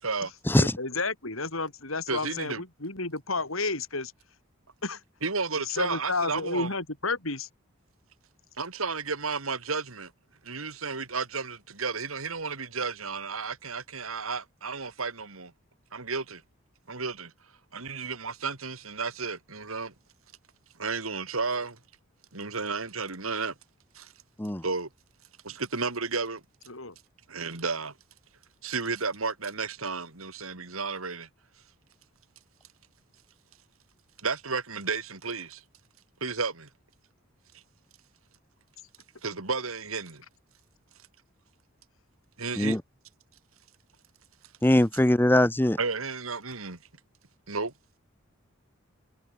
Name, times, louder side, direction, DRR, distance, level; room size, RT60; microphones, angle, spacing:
voice 1, 0.6-4.1 4.8-5.0 5.6-7.5 26.7-26.9, left 3 dB, 80° left, 7.2 m, -31 dB
voice 2, 2.1-2.6 5.2-6.7 8.6-10.1 10.4-15.5 15.9-16.4 16.9-17.3 17.7-19.9 20.8-21.8 22.3-23.5 23.9-24.1 24.6-24.9 25.4-26.4 27.3-27.9 28.6-31.3 34.2-35.6 36.2-36.7 39.2-40.2 42.4-42.8 45.8-46.8 47.5-47.7, right 4 dB, 85° right, 3.2 m, -32 dB
voice 3, 44.6-45.8, left 1 dB, 10° left, 0.7 m, -21 dB
head